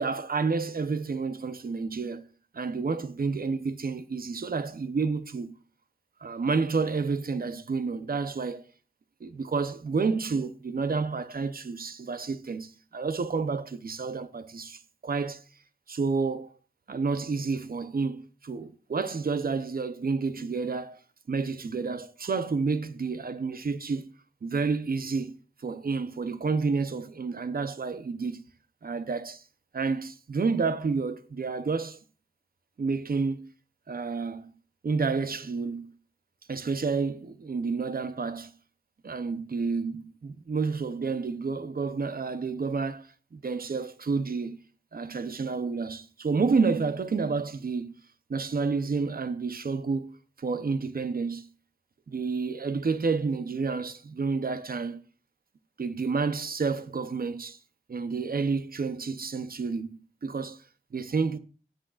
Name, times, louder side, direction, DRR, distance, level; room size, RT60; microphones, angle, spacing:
voice 1, 0.0-2.3 2.5-5.5 6.2-8.6 9.2-15.4 15.9-16.5 16.9-21.0 21.3-24.1 24.4-25.3 25.6-28.4 28.8-29.4 29.7-32.0 32.8-33.4 33.9-34.5 34.8-35.9 36.5-38.5 39.0-44.6 44.9-47.9 48.3-50.1 50.4-51.5 52.1-55.0 55.8-57.6 57.9-60.6 60.9-61.4, right 4 dB, 65° right, 0.8 m, -30 dB
18.0 x 6.3 x 2.4 m
wide cardioid pair, 80°, 16 cm